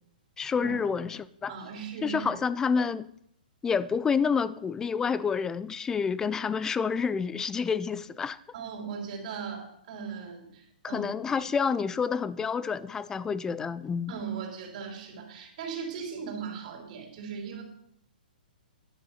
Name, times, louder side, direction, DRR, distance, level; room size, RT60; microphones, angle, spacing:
voice 1, 0.4-1.6 2.0-3.1 3.6-8.4 10.8-14.1, left 6 dB, 10° left, 0.3 m, -28 dB
voice 2, 1.5-2.3 8.5-11.0 14.1-17.6, right 6 dB, 55° right, 3.2 m, -38 dB
10.5 x 6.3 x 5.7 m
hypercardioid pair, 140°, 5 cm